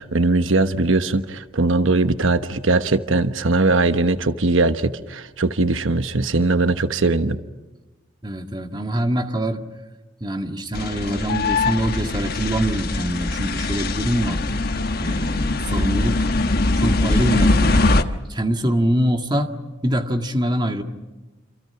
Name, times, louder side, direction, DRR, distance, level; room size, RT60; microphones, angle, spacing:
voice 1, 0.0-7.4, right 3 dB, 90° right, 10 dB, 1.1 m, -20 dB
voice 2, 8.2-9.6 10.2-14.4 15.0-16.3 16.8-18.0 18.3-19.5 19.8-20.8, right 1 dB, 20° right, 5 dB, 1.9 m, -24 dB
sound 1, 10.7-18.0, left 2 dB, 50° left, 1.3 m, -21 dB
28.0 x 27.5 x 5.9 m, 1.2 s
head